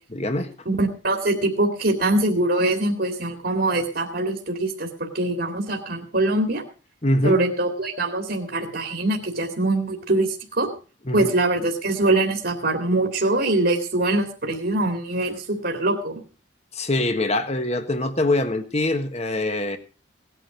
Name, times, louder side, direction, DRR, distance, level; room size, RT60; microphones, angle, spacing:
voice 1, 0.1-0.5 7.0-7.4 11.1-11.3 16.7-19.8, left 1 dB, 35° left, 9 dB, 1.5 m, -23 dB
voice 2, 0.7-6.6 7.2-10.7 11.1-16.2, right 2 dB, 60° right, 3 dB, 2.4 m, -23 dB
18.0 x 10.0 x 5.1 m, 0.37 s
head